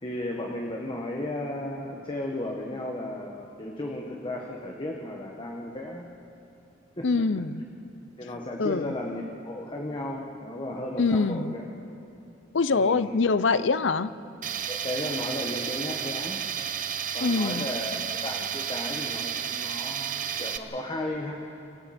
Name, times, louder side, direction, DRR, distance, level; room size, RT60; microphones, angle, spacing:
voice 1, 0.0-6.1 7.0-7.1 8.2-11.6 12.7-13.2 14.7-16.4 17.1-21.3, left 1 dB, 25° left, -1 dB, 1.4 m, -34 dB
voice 2, 7.0-7.6 8.6-8.9 11.0-11.5 12.5-14.1 17.2-17.7, left 4 dB, 70° left, 14 dB, 0.7 m, -24 dB
Tools, 14.4-20.6, right 8 dB, 45° right, 0.9 m, -32 dB
28.5 x 25.0 x 4.4 m, 2.8 s
head